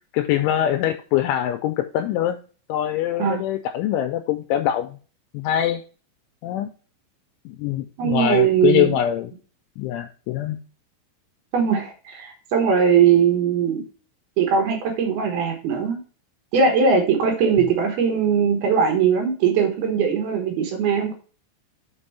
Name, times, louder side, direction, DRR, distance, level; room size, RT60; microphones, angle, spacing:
voice 1, 0.1-2.4 2.7-5.0 5.3-5.8 6.4-6.7 7.5-9.3 9.8-10.6, left 11 dB, 85° left, 7 dB, 2.8 m, -23 dB
voice 2, 8.0-8.9 11.5-13.8 14.4-16.0 16.5-21.1, right 6 dB, 70° right, 3 dB, 2.5 m, -20 dB
6.2 x 5.3 x 5.5 m, 0.38 s
omnidirectional pair, 5.8 m